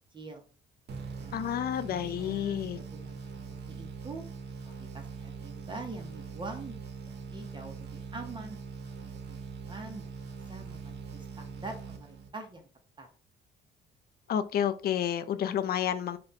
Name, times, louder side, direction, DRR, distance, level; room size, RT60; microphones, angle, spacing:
voice 1, 0.1-0.4 1.2-4.2 4.6-6.8 7.1-8.6 9.0-10.2 10.5-12.7 13.0-13.1, right 3 dB, 25° right, 0.7 m, -45 dB
sound 1, 0.9-12.6, right 5 dB, 55° right, 0.7 m, -42 dB
voice 2, 1.3-2.8 14.3-16.2, left 9 dB, 50° left, 0.4 m, -30 dB
2.4 x 2.2 x 4.0 m
cardioid pair, 90°, 20 cm